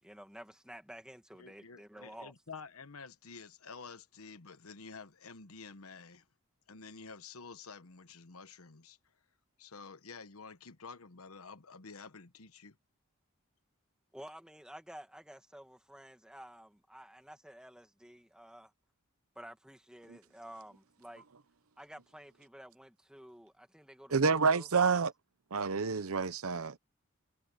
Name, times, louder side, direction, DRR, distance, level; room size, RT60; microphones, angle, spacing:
voice 1, 0.0-2.3 14.1-18.7 19.4-21.3 21.8-24.7, equal, 5° right, 1.9 m, -51 dB
voice 2, 1.4-6.2 6.7-9.0 9.6-12.8, left 4 dB, 90° left, 1.1 m, -50 dB
voice 3, 24.1-25.1 25.5-26.8, right 5 dB, 80° right, 0.8 m, -28 dB
head